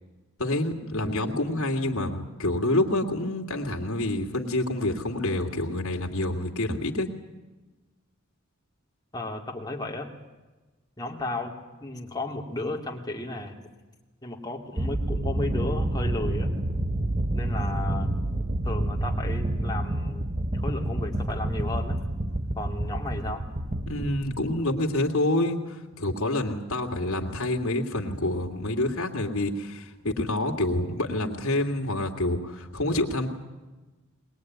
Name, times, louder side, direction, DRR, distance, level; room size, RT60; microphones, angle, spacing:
voice 1, 0.4-7.1 23.9-33.3, left 1 dB, 80° left, 2 dB, 2.6 m, -27 dB
voice 2, 9.1-10.1 11.0-11.5 11.8-13.5 14.2-16.5 17.3-18.1 18.6-20.3 20.5-22.0 22.6-23.4, left 2 dB, 20° left, 1 dB, 2.8 m, -33 dB
sound 1, 14.8-24.9, right 1 dB, 30° right, 1.4 m, -29 dB
21.5 x 20.5 x 9.5 m, 1.2 s
head